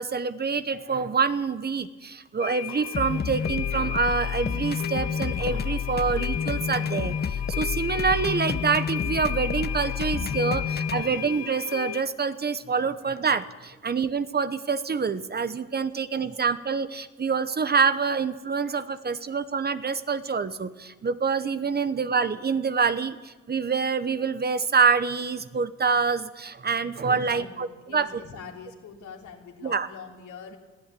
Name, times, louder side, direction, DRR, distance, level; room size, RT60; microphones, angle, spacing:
voice 1, 0.0-27.7 27.9-28.2 29.6-29.9, right 5 dB, 35° right, 12 dB, 1.0 m, -26 dB
sound 1, 2.4-12.0, left 11 dB, 60° left, 0.7 m, -35 dB
sound 2, 2.9-11.0, left 6 dB, 35° left, 0.9 m, -29 dB
voice 2, 27.1-30.6, left 6 dB, 75° left, 1 dB, 3.6 m, -43 dB
21.5 x 14.5 x 8.4 m, 1.2 s
cardioid pair, 90°, 30 cm